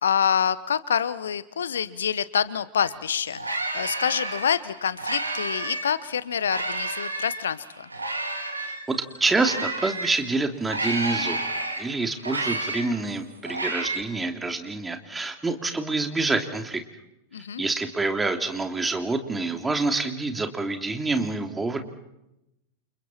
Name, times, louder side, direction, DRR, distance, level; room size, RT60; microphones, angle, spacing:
voice 1, 0.0-7.9 17.3-17.6, left 8 dB, 65° left, 17 dB, 1.0 m, -26 dB
sound 1, 2.8-2.9 3.2-6.0 6.4-10.2 10.6-14.0, right 2 dB, 80° right, 2.6 m, -31 dB
voice 2, 8.6-11.4 11.8-16.8 17.6-21.8, right 3 dB, 10° right, 5 dB, 2.9 m, -27 dB
29.5 x 29.0 x 4.4 m, 0.87 s
figure-of-eight pair, 90°, 0 cm